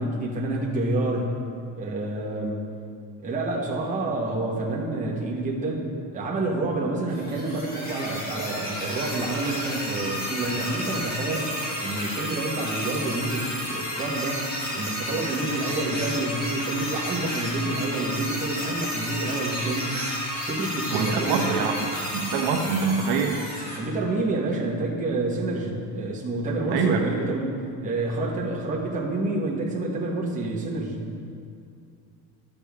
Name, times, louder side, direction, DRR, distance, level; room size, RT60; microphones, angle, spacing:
voice 1, 0.0-1.4 1.7-2.6 3.2-14.4 14.7-20.0 20.5-21.6 23.8-31.1, right 2 dB, 20° right, -3 dB, 1.2 m, -28 dB
sound 1, 7.1-23.8, equal, 20° left, 1.7 m, -32 dB
voice 2, 20.9-21.7 22.1-23.4 26.7-27.1, right 5 dB, 60° right, 2 dB, 0.8 m, -24 dB
11.5 x 7.0 x 3.5 m, 2.4 s
cardioid pair, 160°, 42 cm